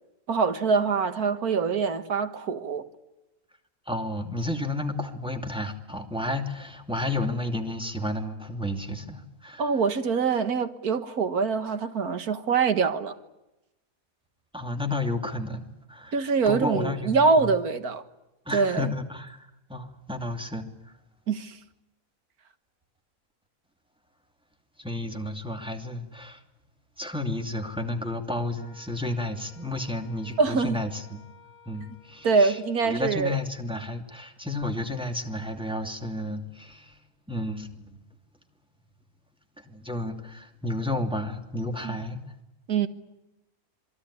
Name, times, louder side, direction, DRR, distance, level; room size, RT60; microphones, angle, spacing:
voice 1, 0.3-2.9 9.6-13.2 16.1-18.0 18.5-18.9 21.3-21.6 30.4-30.8 32.2-33.4 41.8-42.0 42.7-42.9, right 5 dB, 85° right, 2.0 m, -24 dB
voice 2, 3.9-9.6 14.5-16.1 16.5-17.5 18.5-20.7 24.8-26.4 27.0-31.2 31.7-32.6 32.8-37.0 37.3-38.0 39.6-42.2, left 1 dB, 5° right, 2.6 m, -32 dB
Wind instrument woodwind instrument, 28.6-32.9, left 6 dB, 35° left, 5.4 m, -55 dB
27.0 x 22.0 x 9.8 m
omnidirectional pair, 1.5 m